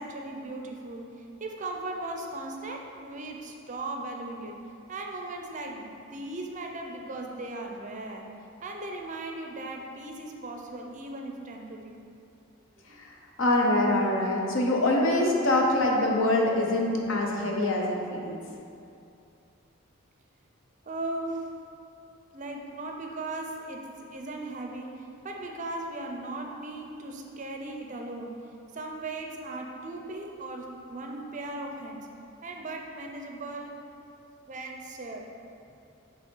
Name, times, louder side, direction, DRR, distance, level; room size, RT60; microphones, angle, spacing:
voice 1, 0.0-4.6 4.9-8.3 8.6-11.9 12.8-13.0 20.9-21.5 22.3-28.4 28.7-32.1 32.4-33.8 34.5-35.3, right 2 dB, 35° right, 2 dB, 0.5 m, -37 dB
voice 2, 12.9-18.4, left 1 dB, 65° left, 0 dB, 0.8 m, -25 dB
7.1 x 3.4 x 4.5 m, 2.7 s
head